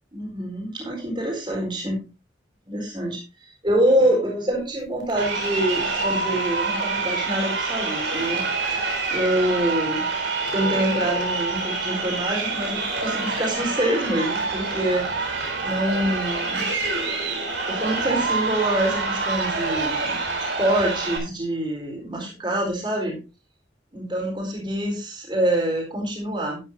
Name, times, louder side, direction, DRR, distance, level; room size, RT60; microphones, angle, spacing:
voice 1, 0.1-2.0 2.7-10.1 10.5-16.7 17.7-23.2 23.9-26.6, right 1 dB, 25° right, -1 dB, 4.2 m, -26 dB
Crowd, 5.1-21.2, right 3 dB, 70° right, 3.8 m, -26 dB
12.0 x 11.0 x 2.7 m, 0.30 s
head